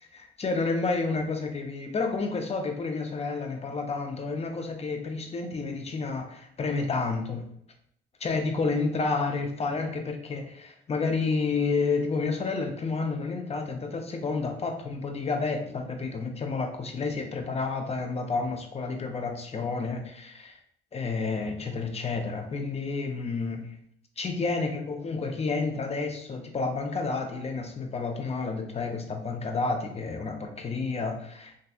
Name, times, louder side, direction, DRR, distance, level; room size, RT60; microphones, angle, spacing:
voice 1, 0.1-7.4 8.2-20.6 20.9-23.7 24.2-31.6, left 4 dB, 30° left, 4 dB, 0.6 m, -30 dB
3.4 x 2.6 x 2.4 m, 0.69 s
cardioid pair, 90°, 20 cm